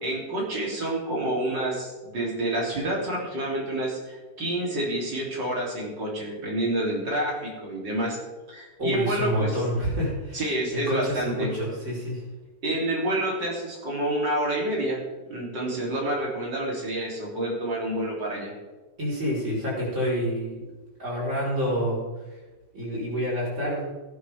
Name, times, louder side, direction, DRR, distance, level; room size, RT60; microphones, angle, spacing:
voice 1, 0.0-8.2 8.5-9.6 10.3-11.5 12.6-15.0 15.3-18.5, right 1 dB, 80° right, -3 dB, 4.0 m, -28 dB
voice 2, 8.8-12.2 19.0-20.6 21.0-22.0 22.7-23.9, equal, 40° right, -5 dB, 4.7 m, -28 dB
16.5 x 11.0 x 3.6 m, 1.2 s
omnidirectional pair, 1.9 m